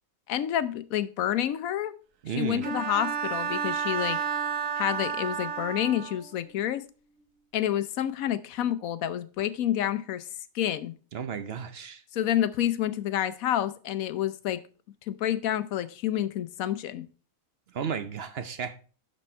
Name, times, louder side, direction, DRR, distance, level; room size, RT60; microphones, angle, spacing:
voice 1, 0.3-1.9 2.3-4.2 4.8-6.8 7.5-10.3 10.5-10.9 12.1-14.6 15.1-17.0, left 11 dB, 90° left, 1.1 m, -28 dB
voice 2, 2.2-2.6 11.1-12.0 17.7-18.8, right 7 dB, 55° right, 0.8 m, -33 dB
Bowed string instrument, 2.6-6.3, right 7 dB, 70° right, 1.3 m, -31 dB
11.5 x 4.4 x 4.3 m
omnidirectional pair, 1.4 m